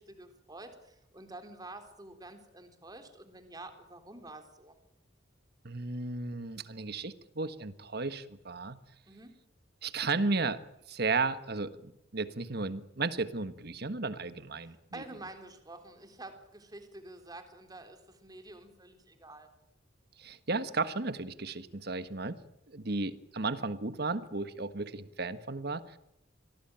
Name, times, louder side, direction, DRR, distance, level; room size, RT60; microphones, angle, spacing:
voice 1, 0.0-4.7 9.1-9.3 14.6-19.5, right 2 dB, 20° right, 7 dB, 3.7 m, -48 dB
voice 2, 5.6-8.8 9.8-10.6 10.9-15.0 20.2-22.4 22.7-26.0, right 3 dB, 55° right, 12 dB, 1.5 m, -34 dB
26.0 x 18.5 x 9.0 m, 0.82 s
head